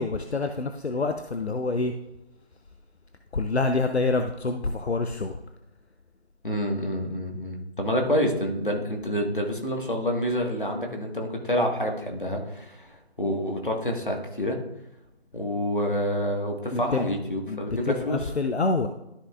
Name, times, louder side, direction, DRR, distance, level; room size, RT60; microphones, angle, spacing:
voice 1, 0.0-1.9 3.3-5.4 16.7-17.1 17.5-18.9, left 3 dB, 75° left, 7 dB, 0.7 m, -27 dB
voice 2, 6.4-14.6 15.3-18.3, equal, 50° left, 2 dB, 1.6 m, -28 dB
13.0 x 5.5 x 2.5 m, 0.88 s
figure-of-eight pair, 175°, 33 cm